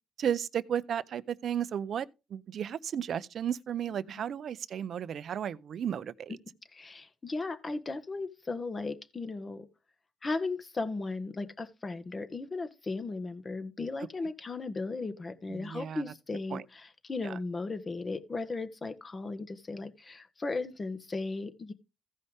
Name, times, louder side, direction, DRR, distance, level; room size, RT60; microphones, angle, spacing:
voice 1, 0.2-6.4 15.5-16.0 16.5-16.6 17.2-17.4, right 9 dB, 60° right, 0.6 m, -34 dB
voice 2, 6.7-9.7 10.2-21.7, left 3 dB, 30° left, 1.4 m, -36 dB
15.5 x 5.4 x 3.6 m
cardioid pair, 90°, 0 cm